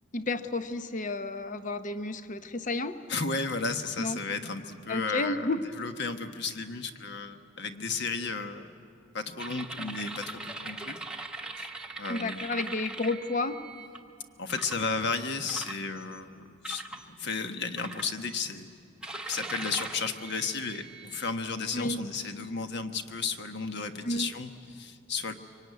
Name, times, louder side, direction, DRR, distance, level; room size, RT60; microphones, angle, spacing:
voice 1, 0.1-3.0 4.0-4.2 4.9-5.6 12.1-13.6 21.7-22.0 24.0-24.3, left 2 dB, 40° left, 10 dB, 0.8 m, -31 dB
voice 2, 3.1-5.5 5.8-8.7 9.1-11.0 11.6-11.7 12.0-12.5 14.4-18.7 19.3-25.3, left 4 dB, 55° left, 7 dB, 1.3 m, -34 dB
sound 1, 9.4-14.0 14.5-14.9 15.5-16.2 16.6-17.0 17.8-18.5 19.0-21.3, right 2 dB, 5° right, 1.1 m, -40 dB
24.5 x 23.5 x 9.5 m, 2.5 s
head